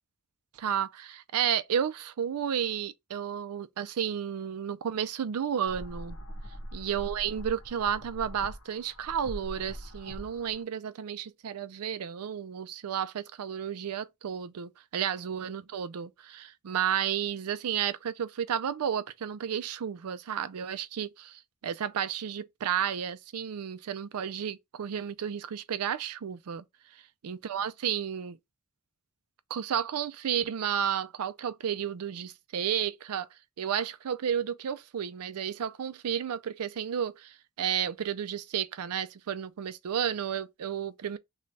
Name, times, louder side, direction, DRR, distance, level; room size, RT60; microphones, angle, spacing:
voice 1, 0.6-6.2 6.7-26.6 27.2-28.4 29.5-33.3 33.6-41.2, right 8 dB, 90° right, 0.4 m, -32 dB
sound 1, 5.6-10.6, equal, 75° left, 0.9 m, -42 dB
3.2 x 2.3 x 3.9 m
head